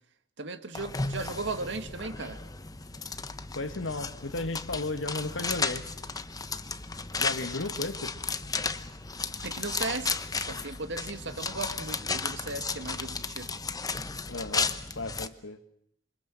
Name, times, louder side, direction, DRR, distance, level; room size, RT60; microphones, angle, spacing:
voice 1, 0.4-2.4 9.4-13.5, right 3 dB, 70° right, 8 dB, 2.2 m, -36 dB
sound 1, 0.8-15.3, left 4 dB, 20° left, 1.0 m, -34 dB
voice 2, 3.6-5.8 7.2-8.1 14.3-14.7 15.0-15.6, left 2 dB, 80° left, 10 dB, 1.8 m, -34 dB
28.0 x 25.0 x 7.7 m, 0.70 s
head